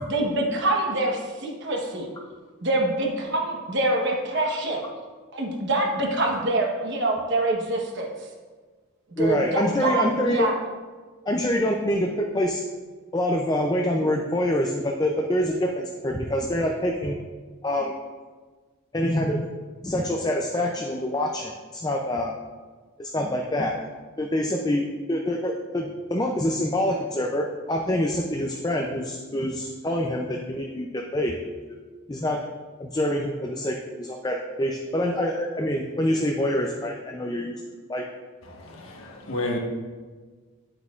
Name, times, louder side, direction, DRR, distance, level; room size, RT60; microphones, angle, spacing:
voice 1, 0.1-2.1 2.6-4.9 5.3-8.1 9.2-10.5, right 2 dB, 55° right, 1 dB, 1.2 m, -25 dB
voice 2, 9.2-10.5 11.3-12.6 13.1-17.2 17.6-18.0 18.9-19.5 19.8-22.3 23.0-23.8 24.2-31.3 31.7-31.8 32.1-32.4 32.8-38.0, left 1 dB, 20° left, 1 dB, 0.4 m, -26 dB
voice 3, 38.4-39.6, left 2 dB, 70° left, 0 dB, 1.3 m, -31 dB
9.3 x 8.1 x 2.5 m, 1.4 s
head